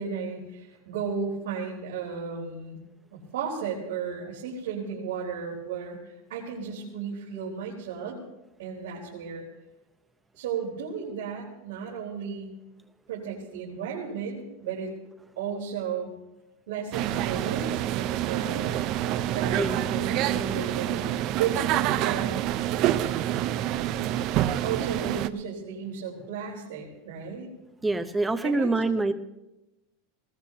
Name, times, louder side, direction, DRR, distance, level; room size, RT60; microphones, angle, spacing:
voice 1, 0.0-2.8 3.1-8.2 8.6-9.5 10.3-12.5 13.1-14.9 15.4-16.1 16.7-18.8 19.2-21.0 21.3-22.4 24.6-27.5 28.4-28.7, right 6 dB, 90° right, -5 dB, 4.2 m, -34 dB
sound 1, 16.9-25.3, right 12 dB, 45° right, 0.6 m, -27 dB
voice 2, 19.6-19.9 27.8-29.1, right 2 dB, 10° right, 8 dB, 0.8 m, -25 dB
20.5 x 17.5 x 2.9 m, 0.96 s
supercardioid pair, 150°, 0 cm